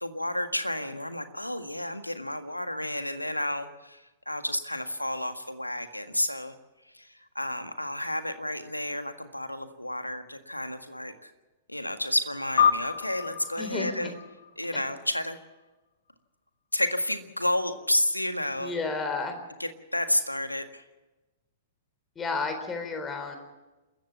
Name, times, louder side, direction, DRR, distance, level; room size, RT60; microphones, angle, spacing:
voice 1, 0.0-6.5 6.8-11.3 11.7-14.1 14.6-15.4 16.7-18.8 19.6-20.8, left 1 dB, 85° left, 9 dB, 1.7 m, -31 dB
sound 1, 12.6-15.3, left 8 dB, 60° left, 1.1 m, -28 dB
voice 2, 13.6-14.2 14.7-14.8 18.6-19.4 22.2-23.4, left 4 dB, 15° left, 7 dB, 4.0 m, -32 dB
27.5 x 14.5 x 7.2 m, 1.1 s
figure-of-eight pair, 105°, 0 cm